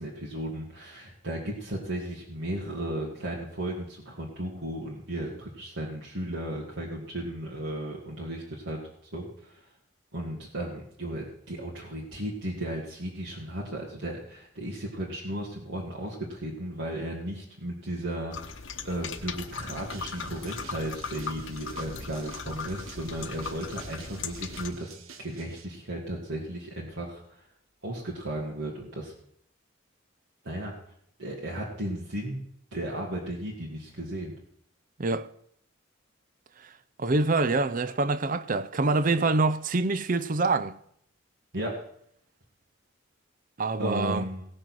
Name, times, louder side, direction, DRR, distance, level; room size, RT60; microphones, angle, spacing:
voice 1, 0.0-8.8 9.1-9.6 10.1-27.4 27.8-29.1 30.4-30.7 31.2-32.4 32.7-34.3 41.5-41.7 43.8-44.5, right 1 dB, 70° right, 2.2 m, -35 dB
sound 1, 18.3-24.7, left 5 dB, 65° left, 1.0 m, -38 dB
sound 2, 19.7-25.7, right 4 dB, 85° right, 1.1 m, -48 dB
voice 2, 35.0-35.3 37.0-40.8 43.6-44.2, right 3 dB, 40° right, 0.5 m, -25 dB
17.0 x 6.5 x 6.2 m
head